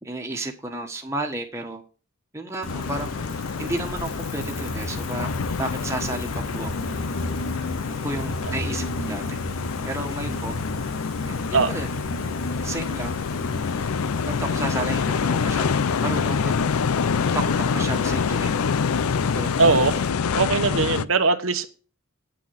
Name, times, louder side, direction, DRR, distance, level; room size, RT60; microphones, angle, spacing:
voice 1, 0.0-1.8 2.3-3.2 3.6-5.3 5.6-6.7 7.9-9.4 9.8-10.5 11.5-11.9 12.6-13.2 14.3-16.5 17.3-18.6 19.3-19.5, right 2 dB, 15° right, 1.4 m, -32 dB
Gull seagull, 2.6-20.1, left 1 dB, 65° left, 2.3 m, -34 dB
sound 1, 2.7-21.1, left 6 dB, 85° left, 0.5 m, -26 dB
voice 2, 19.6-19.9 20.3-21.7, right 4 dB, 70° right, 1.1 m, -21 dB
9.3 x 6.0 x 7.7 m
head